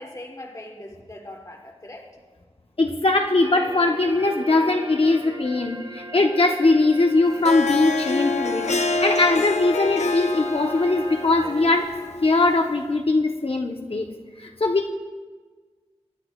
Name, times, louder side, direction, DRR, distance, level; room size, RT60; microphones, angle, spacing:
voice 1, 0.0-2.1, left 1 dB, 30° left, 1 dB, 1.1 m, -40 dB
voice 2, 2.8-11.9 12.2-14.1 14.4-14.9, left 2 dB, 55° left, 2 dB, 0.8 m, -21 dB
sound 1, 3.4-11.9, right 1 dB, 35° right, 0.9 m, -38 dB
Harp, 7.3-12.7, left 3 dB, 85° left, 0.6 m, -27 dB
20.5 x 9.8 x 2.3 m, 1.5 s
wide cardioid pair, 40°, 11 cm